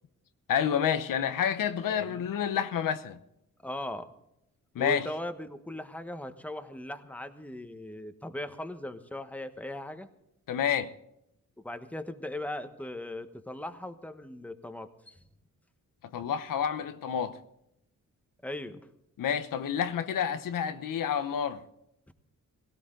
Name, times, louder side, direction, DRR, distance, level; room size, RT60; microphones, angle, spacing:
voice 1, 0.5-3.2 4.7-5.1 10.5-10.9 16.1-17.4 19.2-21.6, left 8 dB, 90° left, 0.9 m, -29 dB
voice 2, 1.9-2.3 3.6-4.1 4.8-10.1 11.6-15.2 18.4-18.9 22.1-22.2, left 1 dB, 5° left, 1.2 m, -39 dB
18.0 x 17.5 x 3.8 m
cardioid pair, 90°, 32 cm